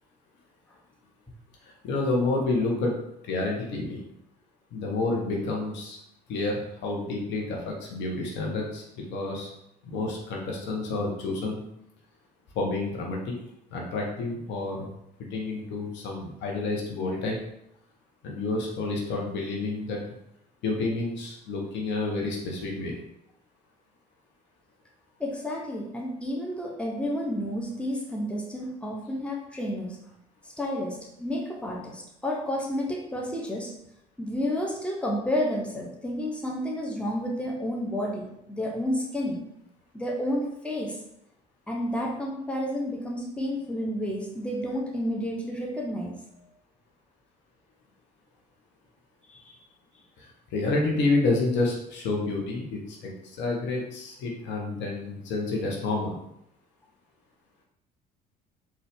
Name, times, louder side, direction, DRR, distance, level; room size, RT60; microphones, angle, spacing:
voice 1, 1.6-3.0 3.2-4.0 4.7-6.0 6.3-8.8 9.1-9.5 9.8-11.6 12.5-13.3 13.7-14.9 15.2-17.4 18.2-20.0 20.6-22.9 50.2-56.2, left 2 dB, 60° left, 0 dB, 1.0 m, -29 dB
voice 2, 25.2-30.0 30.4-33.7 34.2-39.4 39.9-41.0 41.7-46.2 49.3-49.6, equal, 5° left, -1 dB, 1.0 m, -31 dB
3.9 x 2.6 x 3.5 m, 0.76 s
hypercardioid pair, 60°, 21 cm